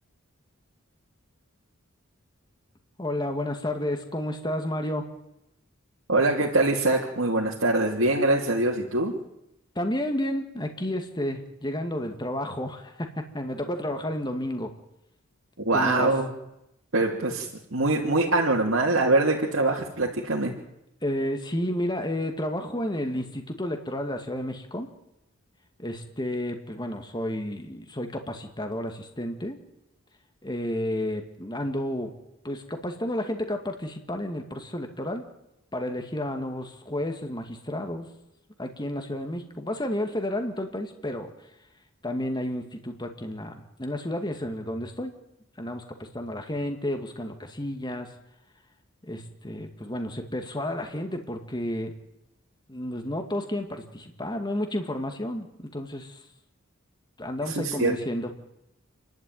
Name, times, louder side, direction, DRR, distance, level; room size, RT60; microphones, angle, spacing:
voice 1, 3.0-5.1 9.8-14.7 15.7-16.1 21.0-24.9 25.8-29.6 30.4-32.1 32.4-35.3 35.7-38.1 38.6-41.3 42.0-45.1 45.6-48.1 49.1-52.0 52.7-55.5 55.7-56.2 57.2-58.3, left 1 dB, 20° left, 5 dB, 2.0 m, -31 dB
voice 2, 6.1-9.1 15.6-16.3 16.9-20.5 57.5-57.9, right 2 dB, 65° right, -3 dB, 2.9 m, -23 dB
28.0 x 12.5 x 9.4 m, 0.85 s
head